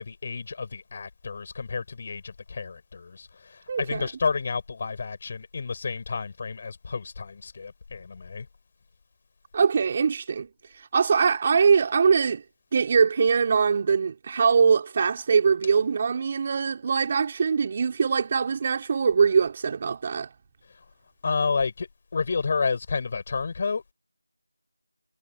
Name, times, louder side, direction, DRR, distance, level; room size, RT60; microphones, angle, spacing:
voice 1, 0.0-8.5 21.2-23.8, left 4 dB, 25° left, 6.3 m, -30 dB
voice 2, 3.7-4.1 9.5-10.5 10.8-12.4 12.7-20.3, right 6 dB, 20° right, 3.7 m, -22 dB
figure-of-eight pair, 170°, 0 cm